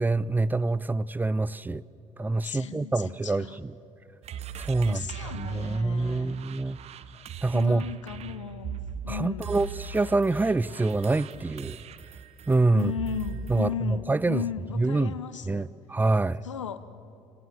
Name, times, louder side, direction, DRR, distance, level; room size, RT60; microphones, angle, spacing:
voice 1, 0.0-1.8 2.2-3.7 4.6-5.1 5.3-6.8 7.4-7.8 9.1-11.8 12.5-12.9 13.5-14.4 14.8-15.1 15.5-16.4, right 3 dB, 10° right, 19 dB, 0.5 m, -26 dB
voice 2, 2.4-3.6 4.8-6.4 7.5-9.6 12.7-15.7 16.4-16.8, left 8 dB, 80° left, 13 dB, 0.8 m, -36 dB
sound 1, 4.2-13.7, right 6 dB, 45° right, 0.9 m, -40 dB
28.5 x 18.5 x 7.0 m, 2.9 s
figure-of-eight pair, 50°, 16 cm